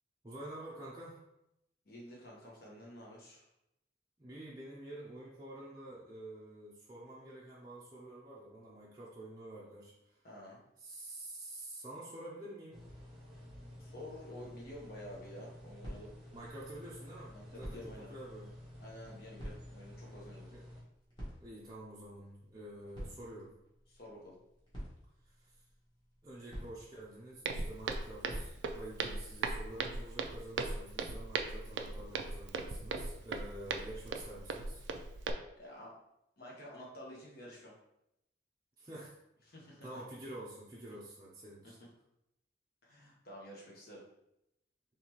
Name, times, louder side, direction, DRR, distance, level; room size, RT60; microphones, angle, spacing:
voice 1, 0.2-1.2 4.2-10.2 10.8-12.9 16.3-17.8 18.1-18.5 20.5-20.6 21.4-23.5 25.2-25.3 26.2-34.8 38.8-39.1 39.8-41.8, right 1 dB, 20° right, -7 dB, 0.6 m, -48 dB
voice 2, 1.8-3.5 10.2-10.6 13.8-16.1 17.3-18.1 18.8-20.5 23.9-24.4 35.6-35.9 36.4-37.7 39.4-40.0 41.6-41.7 42.8-44.0, left 1 dB, 55° left, -3 dB, 1.2 m, -50 dB
sound 1, 12.7-20.8, left 1 dB, ahead, 1.0 m, -51 dB
sound 2, 14.6-29.1, equal, 25° left, 1.5 m, -52 dB
Walk footsteps, 27.4-35.3, right 4 dB, 70° right, 0.4 m, -38 dB
4.0 x 3.2 x 3.0 m, 0.82 s
head